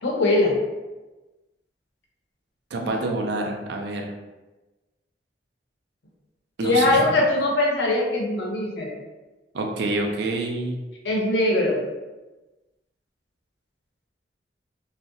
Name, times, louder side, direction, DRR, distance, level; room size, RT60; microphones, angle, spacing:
voice 1, 0.0-0.5 2.8-2.9 6.6-8.9 11.0-11.8, left 2 dB, 70° left, -1 dB, 0.6 m, -21 dB
voice 2, 2.7-4.1 6.6-7.1 9.5-10.8, right 2 dB, 65° right, 2 dB, 0.4 m, -27 dB
2.6 x 2.0 x 2.6 m, 1.1 s
head